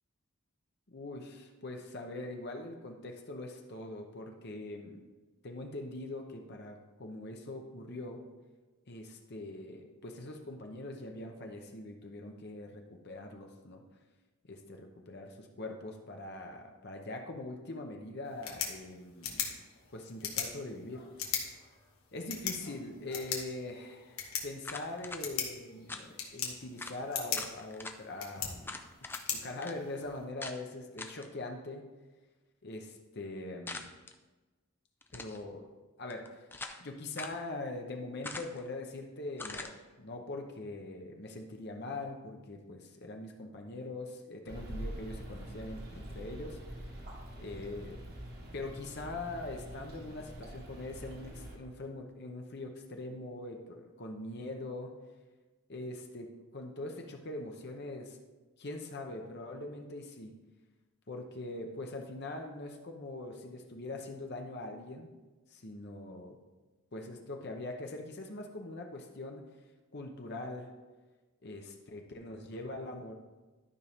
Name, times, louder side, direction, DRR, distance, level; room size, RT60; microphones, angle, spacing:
voice 1, 0.9-5.0 5.4-8.2 8.9-13.8 14.5-19.5 19.9-21.4 22.1-28.8 29.3-31.8 32.6-33.9 35.1-35.6 36.0-36.3 36.8-46.6 47.4-48.0 48.5-54.9 55.7-58.2 58.6-60.3 61.1-65.1 65.5-66.4 66.9-69.5 69.9-70.7 71.4-73.1, left 2 dB, 50° left, 2 dB, 0.8 m, -42 dB
sound 1, 18.2-30.2, left 7 dB, 75° left, 1.4 m, -40 dB
sound 2, 24.6-25.2 25.9-26.1 26.5-26.6 26.8-27.0 27.3-28.0 28.6-29.3 29.6-29.7 30.4-30.6 31.0-31.3 33.7-34.1 35.0-35.4 36.1-36.8 37.2-37.4 38.2-38.7 39.4-39.7, left 3 dB, 10° left, 0.4 m, -43 dB
sound 3, 44.5-51.6, equal, 45° right, 1.4 m, -45 dB
12.5 x 5.3 x 3.5 m, 1.2 s
head